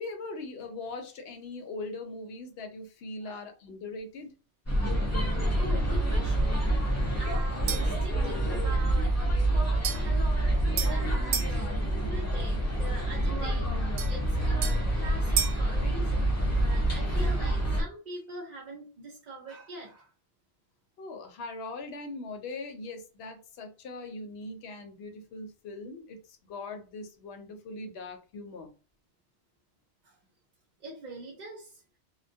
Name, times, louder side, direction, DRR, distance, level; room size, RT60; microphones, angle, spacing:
voice 1, 0.0-4.3 21.0-28.7, left 3 dB, 65° left, 6 dB, 0.8 m, -40 dB
sound 1, 4.7-17.8, right 1 dB, 20° left, 0.4 m, -27 dB
voice 2, 5.3-6.6 7.2-20.1 30.0-30.2 30.8-31.8, right 2 dB, 50° right, -2 dB, 0.6 m, -43 dB
sound 2, 7.7-8.0 9.8-11.6 14.0-15.7, right 8 dB, 85° right, 0.9 m, -34 dB
2.2 x 2.2 x 2.6 m, 0.34 s
omnidirectional pair, 1.2 m